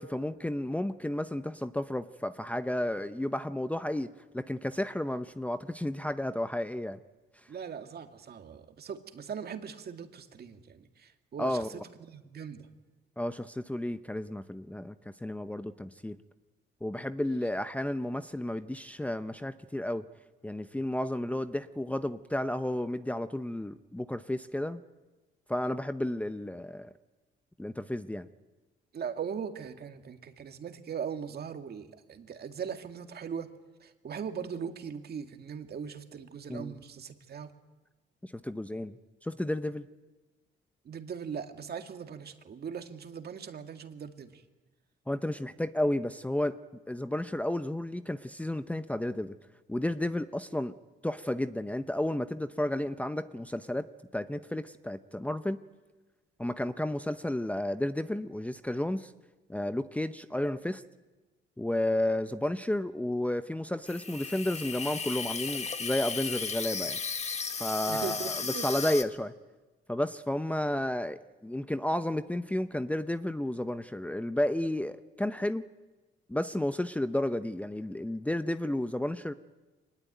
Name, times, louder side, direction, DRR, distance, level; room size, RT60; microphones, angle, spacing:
voice 1, 0.0-4.1 4.3-7.0 11.4-11.7 13.2-14.9 15.2-16.2 16.8-20.0 20.4-24.8 25.5-26.9 27.6-28.3 36.5-36.7 38.2-39.8 45.1-46.6 46.9-49.3 49.7-50.7 51.0-53.9 54.1-55.6 56.4-59.1 59.5-60.8 61.6-67.0 67.6-69.3 69.9-75.6 76.3-79.3, left 1 dB, 5° left, 11 dB, 0.7 m, -32 dB
voice 2, 7.5-12.7 28.9-33.5 33.8-37.5 40.8-44.4 67.9-68.7, right 7 dB, 55° right, 7 dB, 2.1 m, -40 dB
Water tap faucet / Sink (filling or washing), 63.9-69.0, left 5 dB, 35° left, 1.6 m, -35 dB
24.0 x 20.0 x 9.2 m, 1.2 s
cardioid pair, 90°, 20 cm